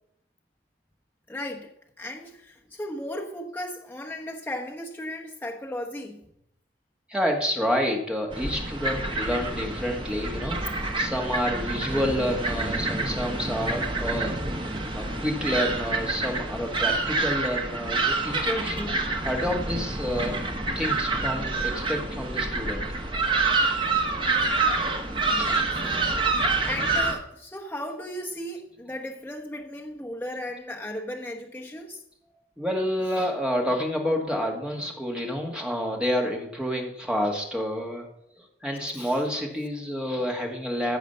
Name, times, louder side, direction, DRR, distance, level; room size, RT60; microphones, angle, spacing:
voice 1, 1.3-6.3 25.3-32.0 38.8-39.1, left 1 dB, 10° left, 1.0 m, -36 dB
voice 2, 7.1-14.4 14.9-20.4 20.7-22.8 25.3-25.9 32.6-38.1 38.4-41.0, equal, 5° right, 1.6 m, -29 dB
sound 1, 8.3-27.1, right 3 dB, 25° right, 1.1 m, -27 dB
14.5 x 5.0 x 6.7 m
head